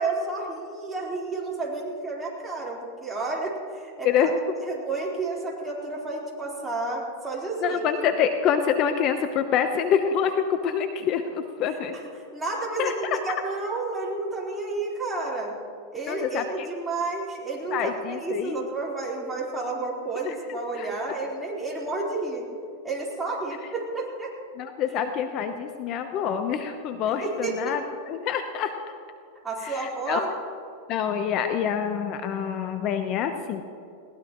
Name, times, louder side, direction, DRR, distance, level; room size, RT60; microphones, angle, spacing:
voice 1, 0.0-4.3 4.6-7.8 11.9-12.0 12.3-15.5 15.9-22.5 22.8-24.3 27.2-27.8 29.4-30.3, right 3 dB, 10° right, -5 dB, 4.1 m, -31 dB
voice 2, 7.6-11.9 12.8-13.2 16.1-16.7 17.7-18.6 20.2-20.3 20.8-20.9 24.6-27.8 28.1-28.7 29.6-30.2 30.9-33.6, left 8 dB, 40° left, 7 dB, 0.9 m, -26 dB
21.0 x 18.5 x 3.1 m, 2.6 s
supercardioid pair, 130°, 0 cm